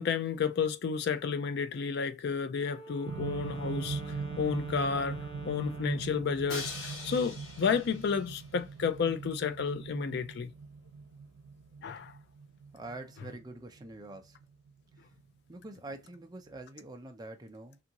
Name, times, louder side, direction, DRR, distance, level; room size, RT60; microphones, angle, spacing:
voice 1, 0.0-5.2 5.4-10.5 11.8-12.1, left 6 dB, 55° left, 0.4 m, -31 dB
Wind instrument woodwind instrument, 2.6-6.1, right 1 dB, 30° left, 0.7 m, -47 dB
sound 1, 3.1-15.2 16.2-16.3, right 4 dB, 80° right, 0.3 m, -41 dB
Crash cymbal, 6.5-8.5, left 3 dB, 90° left, 1.1 m, -43 dB
voice 2, 12.7-14.4 15.5-17.8, right 2 dB, 20° right, 0.5 m, -45 dB
2.7 x 2.5 x 2.8 m
head